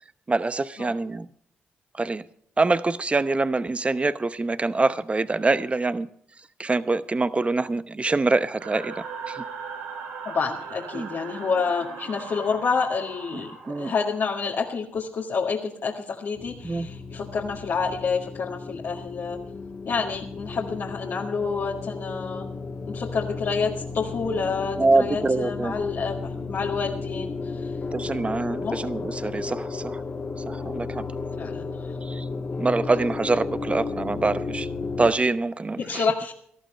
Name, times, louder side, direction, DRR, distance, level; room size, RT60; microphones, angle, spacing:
voice 1, 0.3-1.3 1.9-2.2 2.6-6.1 6.6-9.4 10.9-11.1 13.7-13.9 16.6-16.9 24.8-25.7 27.9-30.0 30.5-31.1 32.0-32.3 32.6-34.7 35.0-36.0, right 3 dB, 30° right, 13 dB, 0.9 m, -25 dB
sound 1, 8.6-14.5, right 5 dB, 90° right, 2.6 m, -38 dB
voice 2, 10.2-19.4 19.9-22.5 22.8-27.7 28.6-28.8 31.4-32.0 35.8-36.3, left 5 dB, 65° left, -3 dB, 1.9 m, -28 dB
sound 2, 16.3-35.1, left 4 dB, 50° left, 2.1 m, -34 dB
18.5 x 13.5 x 3.3 m, 0.65 s
supercardioid pair, 50°, 4 cm